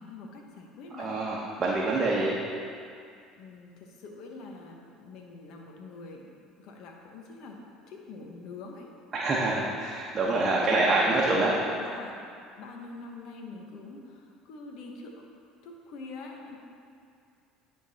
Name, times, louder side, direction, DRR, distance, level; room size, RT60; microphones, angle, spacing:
voice 1, 0.0-1.2 3.4-6.3 6.6-7.6 7.9-8.9 9.4-9.8 10.3-12.2 12.6-15.2 15.6-16.6, left 3 dB, 65° left, 1 dB, 1.1 m, -44 dB
voice 2, 0.9-2.4 9.1-11.5, right 2 dB, 35° right, -4 dB, 1.0 m, -26 dB
10.5 x 3.8 x 4.1 m, 2.4 s
supercardioid pair, 80°, 0 cm